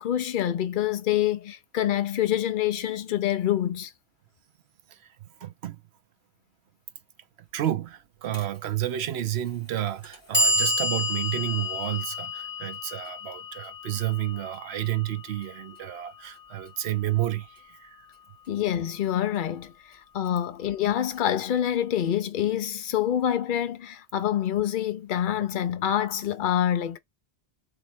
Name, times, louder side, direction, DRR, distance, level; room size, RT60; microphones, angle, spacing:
voice 1, 0.0-3.9 18.5-19.7 20.1-27.0, left 11 dB, 60° left, 0.6 m, -26 dB
voice 2, 4.9-5.8 7.4-18.0, right 13 dB, 75° right, 0.9 m, -31 dB
Clock, 8.3-8.4 9.4-9.5 10.0-16.1, left 1 dB, 20° left, 1.5 m, -30 dB
3.2 x 2.7 x 4.1 m
omnidirectional pair, 1.1 m